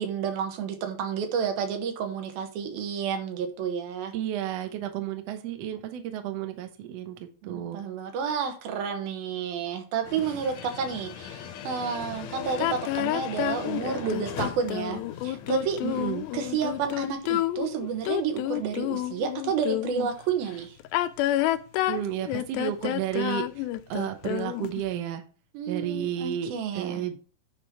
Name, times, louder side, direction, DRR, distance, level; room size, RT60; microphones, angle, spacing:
voice 1, 0.0-4.1 7.4-15.8 16.3-20.8 25.5-27.0, right 6 dB, 85° right, 6 dB, 3.1 m, -30 dB
voice 2, 4.1-7.8 15.8-16.2 21.9-25.2 25.7-27.2, right 11 dB, 70° right, 7 dB, 1.6 m, -32 dB
sound 1, 10.0-17.1, left 8 dB, 75° left, 1.8 m, -40 dB
sound 2, 12.6-20.1 20.8-24.8, left 14 dB, 90° left, 2.5 m, -29 dB
9.7 x 3.8 x 5.7 m, 0.38 s
omnidirectional pair, 4.2 m